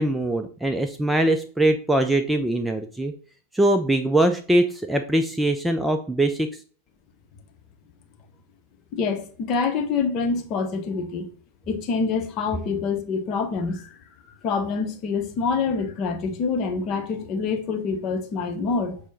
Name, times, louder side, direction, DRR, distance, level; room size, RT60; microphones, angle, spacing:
voice 1, 0.0-3.1 3.5-6.5, right 1 dB, 5° right, 0.4 m, -22 dB
voice 2, 8.9-11.3 11.7-13.9 14.4-19.0, left 5 dB, 35° left, 0.7 m, -26 dB
6.2 x 2.1 x 3.8 m
figure-of-eight pair, 90°, 0 cm